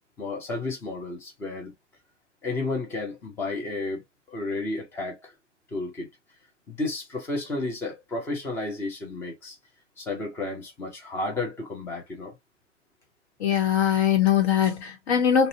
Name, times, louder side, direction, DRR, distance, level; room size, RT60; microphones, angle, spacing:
voice 1, 0.2-1.7 2.4-4.0 4.3-5.3 5.7-6.1 6.7-9.6 10.0-12.3, left 2 dB, 5° left, 0.3 m, -32 dB
voice 2, 13.4-15.5, left 9 dB, 60° left, 1.1 m, -21 dB
2.5 x 2.1 x 2.6 m
hypercardioid pair, 125°, 37 cm